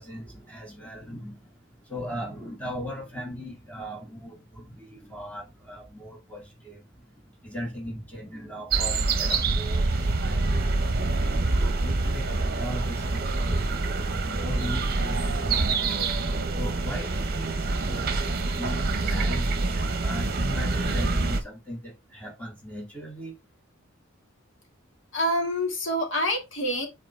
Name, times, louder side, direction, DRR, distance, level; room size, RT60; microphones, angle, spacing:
voice 1, 0.0-10.7 11.2-15.9 16.5-23.4, equal, 10° left, 2.2 m, -39 dB
sound 1, 8.7-21.4, right 3 dB, 50° right, 0.9 m, -26 dB
voice 2, 25.1-26.9, equal, 65° left, 2.0 m, -26 dB
7.7 x 4.5 x 3.4 m
head